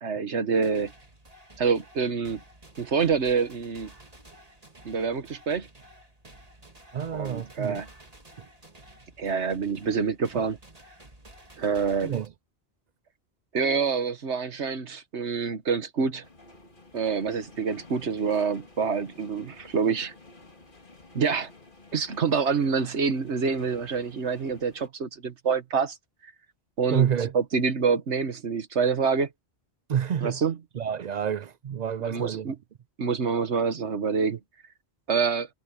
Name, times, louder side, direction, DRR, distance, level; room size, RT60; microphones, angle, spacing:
voice 1, 0.0-0.9 1.6-2.4 2.8-3.9 4.8-5.7 7.1-7.9 9.2-10.6 11.6-12.2 13.5-16.2 16.9-20.1 21.1-21.5 21.9-26.0 26.2-26.3 26.8-27.1 27.3-29.3 30.2-30.6 32.0-32.5 33.0-34.4 35.1-35.5, right 5 dB, 90° right, 1.7 m, -26 dB
sound 1, 0.5-12.3, right 1 dB, 35° right, 2.6 m, -52 dB
voice 2, 6.9-7.8 8.4-8.5 12.0-12.3 26.9-27.3 29.9-30.4 30.8-32.5, right 8 dB, 55° right, 0.5 m, -28 dB
sound 2, 16.2-24.9, left 2 dB, 50° left, 2.5 m, -52 dB
omnidirectional pair, 1.1 m